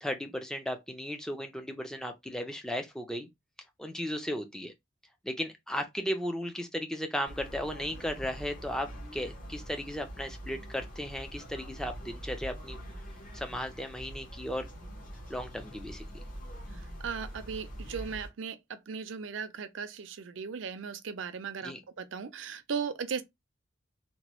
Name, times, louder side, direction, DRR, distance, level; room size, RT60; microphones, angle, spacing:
voice 1, 0.0-3.3 3.8-4.7 5.2-12.8 13.3-14.7 15.3-16.1 21.6-21.8, equal, 5° left, 0.4 m, -35 dB
sound 1, 7.2-18.3, equal, 45° left, 1.0 m, -44 dB
voice 2, 17.0-23.2, right 6 dB, 70° right, 0.5 m, -37 dB
2.9 x 2.2 x 3.0 m
head